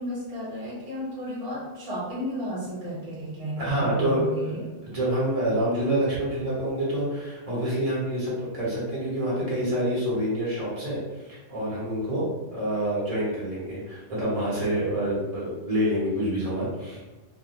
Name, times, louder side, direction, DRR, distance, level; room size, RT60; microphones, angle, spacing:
voice 1, 0.0-4.7, equal, 55° right, -8 dB, 1.2 m, -33 dB
voice 2, 3.6-4.2 4.8-12.2 12.5-17.1, right 1 dB, 35° right, -8 dB, 0.9 m, -27 dB
2.4 x 2.1 x 2.8 m, 1.2 s
omnidirectional pair, 1.2 m